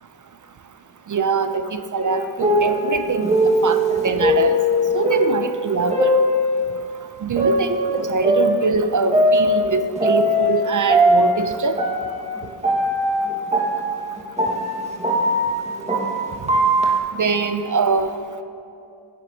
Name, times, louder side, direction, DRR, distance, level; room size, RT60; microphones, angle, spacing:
voice 1, 1.1-3.3 3.6-4.6 4.9-6.1 7.2-11.8 17.1-18.2, right 4 dB, 45° right, 9 dB, 0.5 m, -23 dB
sound 1, 2.0-6.8 7.4-10.6 10.9-17.0, equal, 15° right, 1.6 m, -20 dB
10.5 x 8.4 x 2.8 m, 2.6 s
cardioid pair, 60°, 45 cm